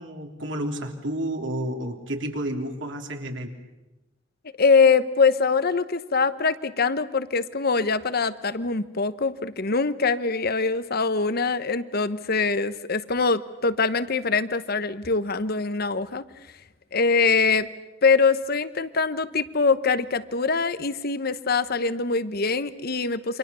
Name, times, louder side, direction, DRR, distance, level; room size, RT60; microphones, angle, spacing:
voice 1, 0.0-3.5, right 1 dB, 70° right, 3 dB, 3.4 m, -31 dB
voice 2, 4.6-16.2 16.9-17.7 18.0-23.4, left 4 dB, 55° left, 14 dB, 1.1 m, -23 dB
29.0 x 25.5 x 7.0 m, 1.0 s
head